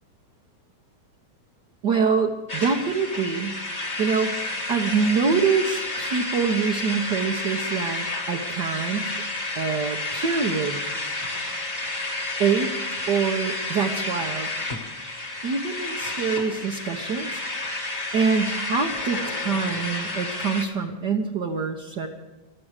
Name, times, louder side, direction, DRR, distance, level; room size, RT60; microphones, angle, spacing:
voice 1, 1.8-3.5 4.0-4.4 4.7-9.1 9.5-10.8 12.4-12.7 13.1-14.5 15.4-17.4 18.1-22.1, right 5 dB, 65° right, 1 dB, 1.0 m, -25 dB
sound 1, 2.5-20.6, left 2 dB, 25° left, 1.1 m, -30 dB
21.5 x 13.0 x 4.9 m, 1.1 s
omnidirectional pair, 3.4 m